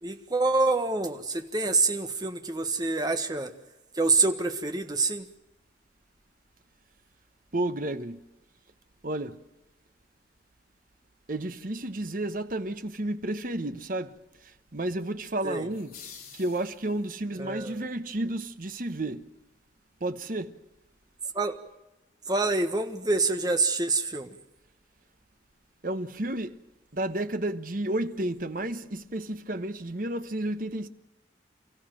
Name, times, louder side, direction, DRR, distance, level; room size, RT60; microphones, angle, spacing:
voice 1, 0.0-3.5 3.9-5.3 15.4-15.7 17.3-17.8 21.3-21.6 22.3-24.3, right 3 dB, 20° right, 1.4 m, -26 dB
voice 2, 7.5-8.2 9.0-9.4 11.3-14.1 14.7-15.9 16.3-19.3 20.0-20.5 25.8-26.6 26.9-30.9, right 1 dB, 50° right, 1.1 m, -31 dB
sound 1, 15.7-17.3, left 7 dB, 50° left, 3.7 m, -48 dB
29.5 x 15.0 x 7.7 m
head